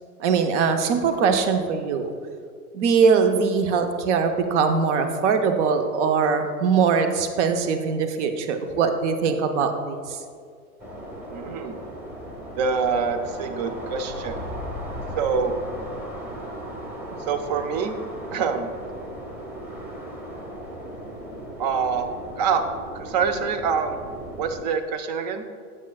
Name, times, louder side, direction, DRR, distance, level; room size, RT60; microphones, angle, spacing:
voice 1, 0.2-2.1 2.7-10.2, right 5 dB, 50° right, 7 dB, 0.8 m, -22 dB
sound 1, 10.8-24.6, equal, 5° right, 0.9 m, -36 dB
voice 2, 11.3-11.8 12.6-14.4 15.2-15.6 17.2-18.0 18.3-18.7 21.6-22.1 22.4-22.6 22.9-24.0 24.4-25.4, right 6 dB, 30° right, 8 dB, 0.4 m, -25 dB
8.2 x 7.4 x 2.3 m, 2.1 s
hypercardioid pair, 110°, 44 cm